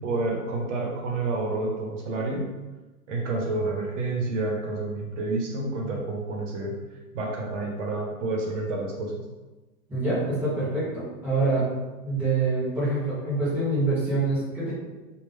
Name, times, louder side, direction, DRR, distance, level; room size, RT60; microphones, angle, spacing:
voice 1, 0.0-2.5 3.1-6.7 7.1-9.1, right 2 dB, 50° right, -1 dB, 1.0 m, -29 dB
voice 2, 9.9-11.7 12.0-14.7, right 2 dB, 5° right, -11 dB, 0.4 m, -25 dB
3.5 x 2.4 x 3.3 m, 1.2 s
hypercardioid pair, 155°, 46 cm